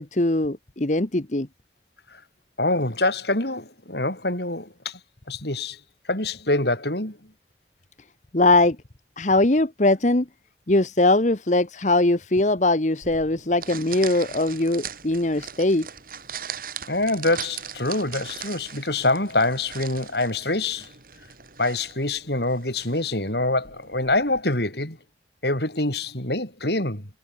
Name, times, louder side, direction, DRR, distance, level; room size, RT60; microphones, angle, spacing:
voice 1, 0.0-1.5 8.3-8.8 9.2-10.3 10.7-15.9, left 2 dB, 40° left, 1.2 m, -21 dB
voice 2, 2.6-5.0 5.3-5.8 6.1-7.2 16.9-20.9 21.6-25.0 25.4-27.1, left 2 dB, 65° left, 6.3 m, -25 dB
sound 1, 13.0-24.4, right 8 dB, 50° right, 4.1 m, -40 dB
head